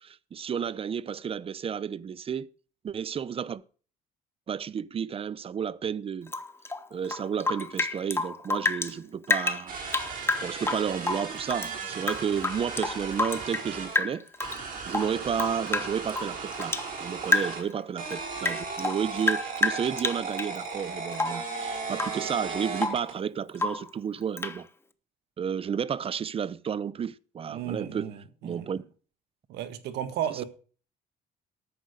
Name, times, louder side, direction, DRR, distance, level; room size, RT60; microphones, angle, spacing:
voice 1, 0.0-2.5 2.8-3.6 4.5-6.3 6.9-9.8 10.4-14.2 14.9-24.7 25.4-28.1 28.4-28.8, right 7 dB, 35° right, 0.6 m, -32 dB
Rain / Drip, 6.3-8.9 9.2-11.7 12.0-13.7 13.9-14.6 14.9-16.9 17.3-17.7 18.0-20.6 21.1-21.5 21.9-22.2 22.5-23.1 23.5-23.9 24.4-24.6, left 3 dB, 15° left, 0.9 m, -29 dB
sound 1, 9.7-14.0 14.4-17.6 18.0-23.2, right 4 dB, 55° right, 5.7 m, -36 dB
voice 2, 27.5-28.7 29.5-30.4, right 10 dB, 80° right, 1.6 m, -34 dB
13.0 x 9.1 x 5.1 m
cardioid pair, 110°, 17 cm